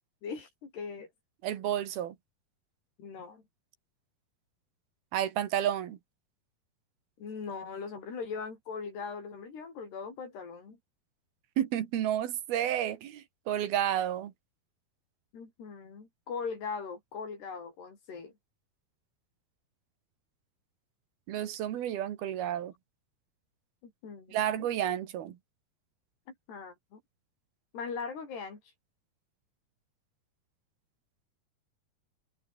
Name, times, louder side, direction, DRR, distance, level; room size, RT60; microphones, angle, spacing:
voice 1, 0.2-1.1 3.0-3.4 7.2-10.8 15.3-18.3 23.8-24.7 26.5-27.0 27.7-28.6, left 5 dB, 85° left, 8.1 m, -40 dB
voice 2, 1.4-2.2 5.1-6.0 11.6-14.3 21.3-22.7 24.3-25.4, right 11 dB, 70° right, 3.5 m, -31 dB
omnidirectional pair, 4.6 m